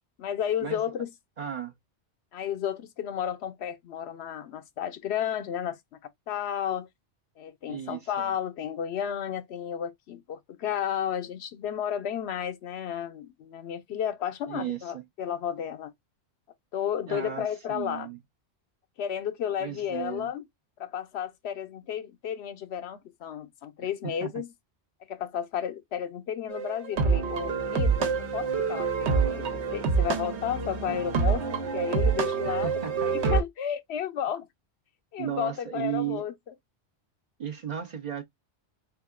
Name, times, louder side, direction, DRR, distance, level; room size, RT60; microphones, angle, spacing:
voice 1, 0.2-1.1 2.3-5.8 6.3-6.9 7.4-15.9 16.7-18.1 19.0-20.4 20.8-24.5 25.1-31.4 31.7-32.7 33.1-34.5 35.1-36.3, left 9 dB, 70° left, 0.8 m, -32 dB
voice 2, 1.4-1.7 7.7-8.3 14.5-15.0 17.1-18.2 19.6-20.3 24.0-24.3 32.4-33.1 35.2-36.2 37.4-38.2, right 10 dB, 50° right, 0.5 m, -35 dB
sound 1, 26.5-33.4, right 5 dB, 75° right, 1.0 m, -26 dB
3.5 x 3.5 x 2.2 m
omnidirectional pair, 1.2 m